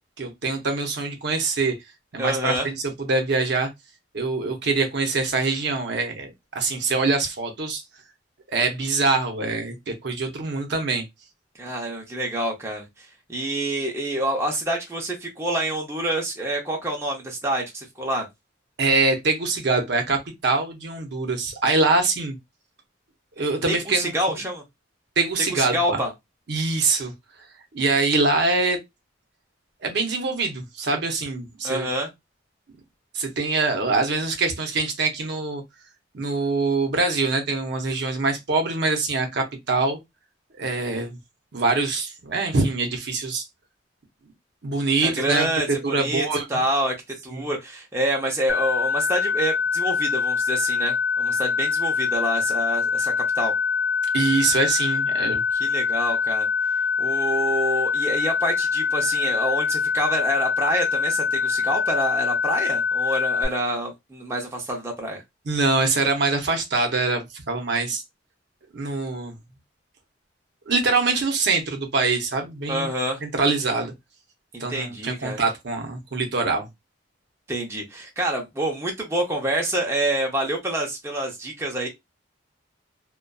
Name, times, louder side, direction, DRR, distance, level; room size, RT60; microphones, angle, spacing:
voice 1, 0.2-1.7 2.1-3.7 4.1-7.8 8.5-11.0 18.8-22.4 23.4-24.1 25.2-26.0 26.5-27.1 27.7-28.8 29.8-31.9 33.1-35.6 36.1-40.0 40.6-41.2 41.5-43.4 44.6-46.4 47.3-47.5 54.1-55.4 65.5-68.0 68.7-69.3 70.7-72.9 73.2-73.9 74.6-76.7, right 3 dB, 60° right, 0.6 m, -24 dB
voice 2, 2.2-2.7 11.6-18.3 23.7-24.6 25.5-26.1 31.6-32.1 45.0-46.9 47.2-53.5 55.5-56.5 57.0-65.2 72.7-73.2 74.5-75.4 77.5-81.9, right 1 dB, 15° right, 0.5 m, -27 dB
sound 1, 48.5-63.4, left 5 dB, 75° left, 0.5 m, -24 dB
2.5 x 2.2 x 2.2 m
head